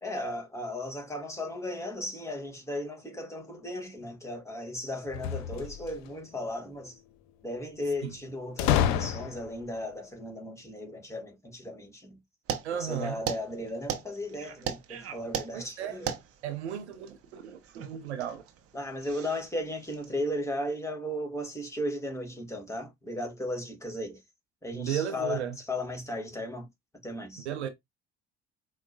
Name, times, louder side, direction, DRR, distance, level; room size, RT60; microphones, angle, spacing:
voice 1, 0.0-7.0 7.4-12.2 12.7-16.2 18.7-24.2 24.6-26.7 27.0-27.5, left 1 dB, 10° left, 1.4 m, -36 dB
sound 1, 5.1-6.1 8.6-9.6, left 10 dB, 65° left, 0.5 m, -28 dB
sound 2, 12.5-20.2, right 8 dB, 45° right, 0.7 m, -38 dB
voice 2, 12.6-13.2 15.5-16.0 16.4-18.4 24.7-25.6 27.5-27.7, right 9 dB, 85° right, 0.5 m, -34 dB
4.4 x 2.0 x 2.6 m
figure-of-eight pair, 55°, 33 cm